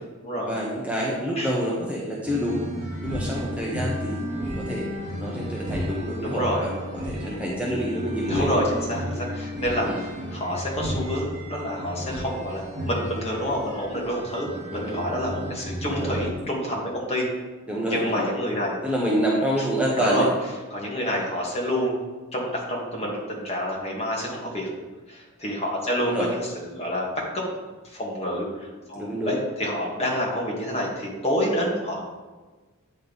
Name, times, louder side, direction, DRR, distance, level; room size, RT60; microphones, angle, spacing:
voice 1, 0.4-2.7 3.0-4.2 4.6-4.9 5.2-8.6 9.8-10.0 14.7-15.0 15.9-16.2 17.7-18.3 18.8-20.3 26.0-26.3 29.0-29.4, equal, 5° right, -4 dB, 1.0 m, -27 dB
sound 1, 2.2-16.3, equal, 35° right, 1.8 m, -33 dB
voice 2, 6.2-6.7 7.2-7.5 8.3-17.3 17.9-18.8 20.0-20.3 20.7-22.0 22.3-24.7 25.1-27.5 27.8-32.0, equal, 30° left, -3 dB, 1.9 m, -28 dB
9.4 x 5.3 x 4.0 m, 1.3 s
head